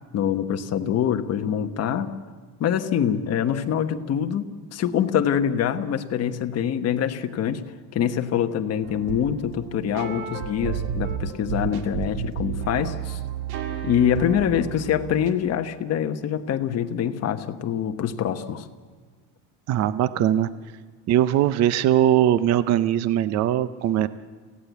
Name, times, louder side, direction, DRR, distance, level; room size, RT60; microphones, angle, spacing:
voice 1, 0.1-2.1 2.6-13.2 13.8-18.7, left 9 dB, 35° left, 7 dB, 1.2 m, -25 dB
sound 1, 8.8-15.3, right 8 dB, 70° right, 2.1 m, -32 dB
voice 2, 19.7-20.5 21.1-24.1, right 11 dB, 40° right, 14 dB, 0.6 m, -20 dB
27.0 x 16.5 x 8.2 m, 1.5 s
cardioid pair, 155°, 43 cm